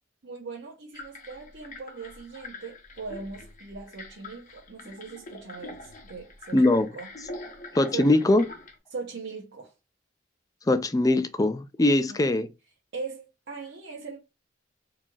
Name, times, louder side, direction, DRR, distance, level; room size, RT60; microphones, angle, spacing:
voice 1, 0.2-6.6 6.9-7.1 7.9-8.1 8.9-9.7 12.1-12.3 12.9-14.2, right 4 dB, 60° right, 1.0 m, -39 dB
sound 1, 0.9-8.8, left 2 dB, 45° left, 0.9 m, -44 dB
voice 2, 6.5-6.9 7.7-8.4 10.7-12.5, left 2 dB, 20° left, 0.4 m, -21 dB
4.4 x 2.9 x 2.4 m
head